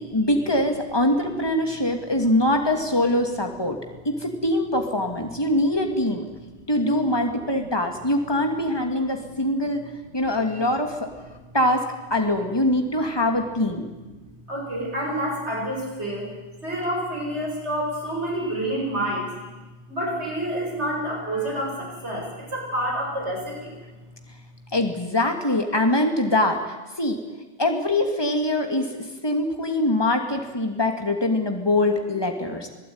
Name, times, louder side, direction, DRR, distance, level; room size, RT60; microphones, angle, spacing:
voice 1, 0.0-3.8 4.0-6.2 6.7-9.8 10.1-11.1 11.5-11.8 12.1-13.9 24.7-27.2 27.6-28.9 29.2-32.7, left 1 dB, 20° left, 4 dB, 2.8 m, -23 dB
voice 2, 9.3-9.7 10.5-10.6 13.8-13.9 14.2-16.3 16.6-19.6 19.9-23.7, right 1 dB, 70° right, -1 dB, 8.0 m, -29 dB
26.0 x 16.5 x 9.7 m, 1.2 s
omnidirectional pair, 1.2 m